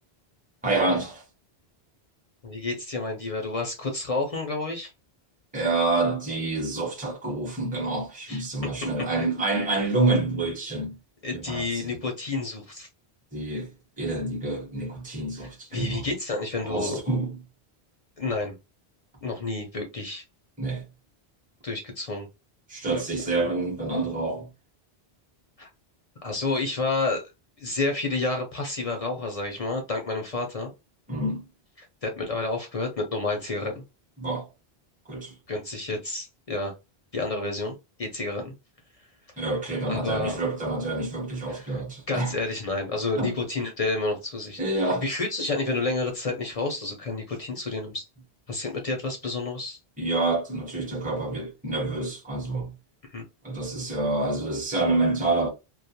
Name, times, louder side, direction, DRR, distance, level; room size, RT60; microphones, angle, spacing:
voice 1, 0.6-1.2 5.5-11.0 11.3-11.9 13.3-16.1 16.6-17.4 20.6-20.8 22.7-24.5 31.1-31.5 34.2-34.5 35.1-35.3 39.4-42.4 43.2-43.3 44.6-45.1 50.0-52.7 53.4-55.5, right 2 dB, 10° right, 0.6 m, -27 dB
voice 2, 2.4-4.9 8.3-8.4 11.2-12.9 15.4-17.0 18.2-18.5 19.2-20.2 21.6-22.3 25.6-25.7 26.2-27.3 27.6-30.7 31.8-33.8 35.5-36.7 37.1-38.5 39.9-40.4 41.5-41.8 42.1-44.6 45.0-48.1 48.5-49.8 53.1-53.2, left 3 dB, 50° left, 0.5 m, -30 dB
2.3 x 2.1 x 2.7 m
omnidirectional pair, 1.1 m